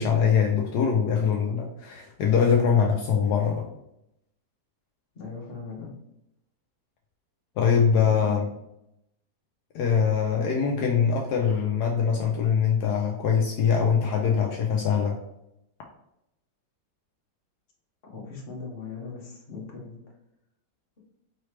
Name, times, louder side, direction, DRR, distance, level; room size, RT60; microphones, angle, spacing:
voice 1, 0.0-3.6 7.6-8.4 9.7-15.2, left 6 dB, 75° left, 0 dB, 1.1 m, -23 dB
voice 2, 5.1-5.9 8.0-8.4 18.0-20.0, left 4 dB, 40° left, -2 dB, 1.1 m, -38 dB
4.8 x 3.1 x 3.1 m, 0.83 s
omnidirectional pair, 1.8 m